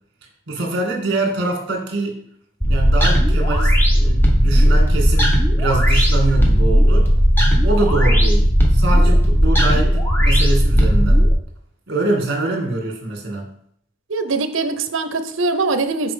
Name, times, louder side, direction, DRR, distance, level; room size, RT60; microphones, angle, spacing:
voice 1, 0.5-2.2 2.7-7.1 7.6-11.3 11.9-13.5, right 2 dB, 55° right, 0 dB, 2.0 m, -24 dB
sound 1, 2.6-11.3, equal, 10° left, 1.0 m, -15 dB
voice 2, 14.1-16.1, right 3 dB, 70° right, 9 dB, 0.7 m, -22 dB
6.0 x 4.4 x 5.1 m, 0.67 s
head